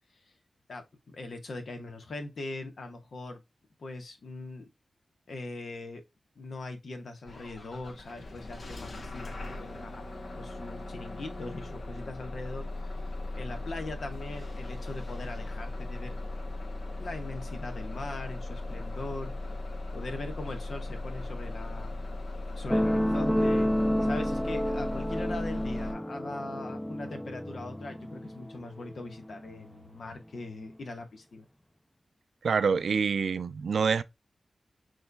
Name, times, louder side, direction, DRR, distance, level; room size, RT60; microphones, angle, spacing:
voice 1, 0.7-3.4 3.8-4.7 5.3-6.0 6.4-10.0 10.3-12.9 13.4-16.2 17.0-19.3 19.9-22.0 22.5-23.7 24.0-31.4, left 2 dB, 75° left, 1.3 m, -41 dB
Bus / Engine starting, 7.3-25.9, left 2 dB, 60° left, 1.0 m, -38 dB
sound 1, 22.7-29.7 30.6-30.7, equal, 5° left, 0.5 m, -30 dB
voice 2, 32.4-34.0, right 5 dB, 85° right, 0.4 m, -26 dB
6.3 x 3.3 x 2.2 m
cardioid pair, 65°, 0 cm